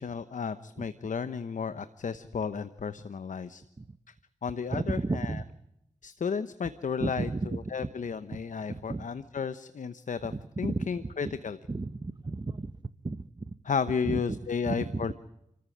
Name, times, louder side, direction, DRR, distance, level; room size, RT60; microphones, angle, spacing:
voice 1, 0.0-3.6 4.4-5.3 6.0-7.3 7.7-10.3 10.6-11.6 13.7-15.1, left 6 dB, 80° left, 12 dB, 1.0 m, -33 dB
voice 2, 4.7-5.4 7.0-7.9 8.3-8.4 8.7-9.1 10.3-11.4 11.7-13.5 14.0-14.4 14.6-15.1, right 3 dB, 35° right, 15 dB, 1.2 m, -34 dB
29.0 x 14.5 x 8.6 m, 0.83 s
cardioid pair, 50°, 13 cm